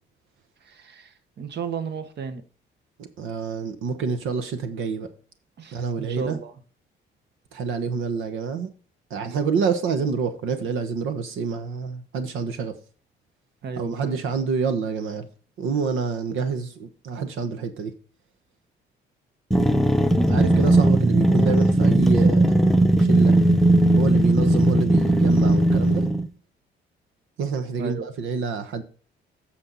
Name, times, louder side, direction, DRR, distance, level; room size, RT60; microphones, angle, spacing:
voice 1, 0.6-2.4 5.6-6.5 13.6-14.2 27.8-28.0, right 6 dB, 60° right, 1.3 m, -34 dB
voice 2, 3.2-5.1 5.7-6.4 7.5-8.7 9.1-12.8 13.8-15.3 15.6-17.9 20.2-22.6 23.0-23.4 24.0-26.1 27.4-28.8, right 5 dB, 85° right, 1.2 m, -27 dB
sound 1, 19.5-26.3, right 1 dB, ahead, 0.8 m, -18 dB
9.8 x 6.5 x 4.0 m
cardioid pair, 90°, 20 cm